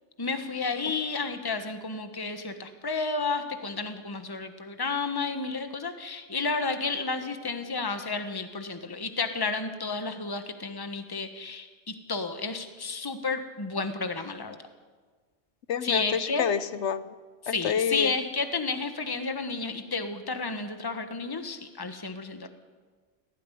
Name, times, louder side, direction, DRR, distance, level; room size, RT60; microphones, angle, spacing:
voice 1, 0.2-14.6 15.8-16.5 17.4-22.5, left 4 dB, 20° left, 8 dB, 1.3 m, -31 dB
voice 2, 15.7-17.0 17.5-18.1, left 7 dB, 75° left, 14 dB, 1.1 m, -28 dB
18.0 x 15.0 x 9.9 m, 1.4 s
omnidirectional pair, 1.2 m